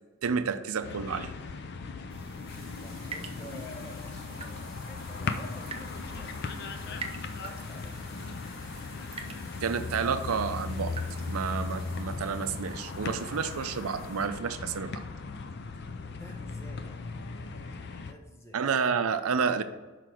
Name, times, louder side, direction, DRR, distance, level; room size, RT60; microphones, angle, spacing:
voice 1, 0.2-1.3 9.6-11.0 11.3-15.0 18.5-19.6, right 6 dB, 85° right, 11 dB, 0.5 m, -30 dB
sound 1, 0.8-18.1, left 4 dB, 50° left, 0.4 m, -38 dB
voice 2, 2.1-8.0 16.0-18.6, left 1 dB, 15° left, 1 dB, 0.9 m, -50 dB
sound 2, 2.1-12.0, right 4 dB, 25° right, 0.5 m, -47 dB
sound 3, 2.5-14.3, left 1 dB, 30° left, 2.1 m, -53 dB
5.9 x 4.6 x 4.8 m, 1.3 s
head